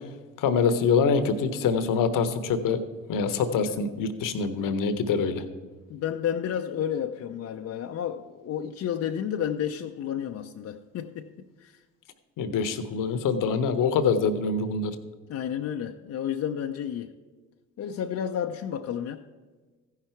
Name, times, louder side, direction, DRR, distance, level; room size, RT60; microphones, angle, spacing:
voice 1, 0.4-2.8 3.1-5.4 12.4-14.9, left 5 dB, 60° left, 11 dB, 1.0 m, -25 dB
voice 2, 5.9-11.3 11.6-11.8 15.3-17.1 17.8-19.2, left 9 dB, 45° left, 5 dB, 0.6 m, -31 dB
15.0 x 5.9 x 4.4 m, 1.3 s
hypercardioid pair, 55°, 36 cm